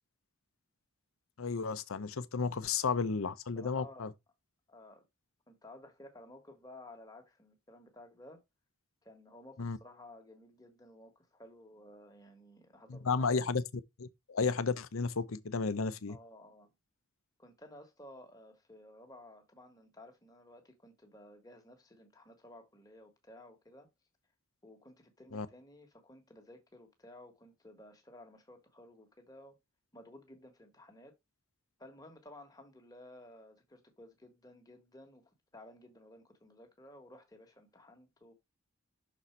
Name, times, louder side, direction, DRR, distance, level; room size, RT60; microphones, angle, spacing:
voice 1, 1.4-4.1 9.6-9.8 12.9-13.6 14.0-16.2 25.3-25.5, left 5 dB, 75° left, 0.7 m, -33 dB
voice 2, 3.5-4.1 4.7-5.1 5.5-8.4 9.0-13.5 16.1-16.7 17.4-23.9 24.6-29.6 29.9-31.1 31.8-38.3, left 1 dB, 15° left, 1.4 m, -55 dB
6.2 x 4.2 x 4.5 m
head